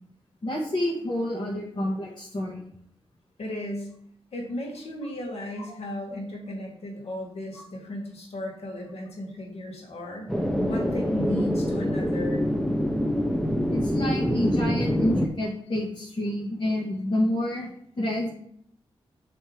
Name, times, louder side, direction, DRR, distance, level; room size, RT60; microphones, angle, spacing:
voice 1, 0.4-2.6 13.7-18.3, left 1 dB, 45° left, -5 dB, 1.7 m, -28 dB
voice 2, 3.4-3.9 4.3-12.5 14.4-14.5, left 1 dB, 90° left, 0 dB, 1.9 m, -35 dB
sound 1, 10.3-15.3, equal, 5° left, 0.7 m, -25 dB
7.5 x 3.5 x 5.1 m, 0.66 s
wide cardioid pair, 115°, 10 cm